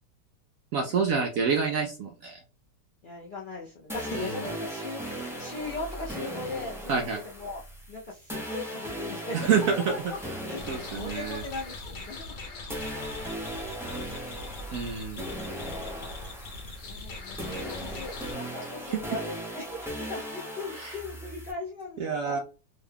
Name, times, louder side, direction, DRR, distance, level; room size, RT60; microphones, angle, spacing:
voice 1, 0.7-2.4 4.1-4.4 6.9-7.2 9.3-9.8 10.7-11.4 14.7-15.2 18.9-19.0 20.8-21.0 22.0-22.4, right 6 dB, 70° right, 3 dB, 0.8 m, -27 dB
voice 2, 3.0-7.6 7.9-10.2 10.4-12.5 13.1-14.7 15.1-16.1 16.8-22.4, left 3 dB, 80° left, -5 dB, 0.4 m, -39 dB
sound 1, 3.9-12.4 12.7-21.5, equal, 5° right, 0.4 m, -38 dB
sound 2, 10.6-18.3, left 3 dB, 60° left, 1.3 m, -42 dB
3.6 x 2.2 x 3.3 m, 0.32 s
omnidirectional pair, 1.8 m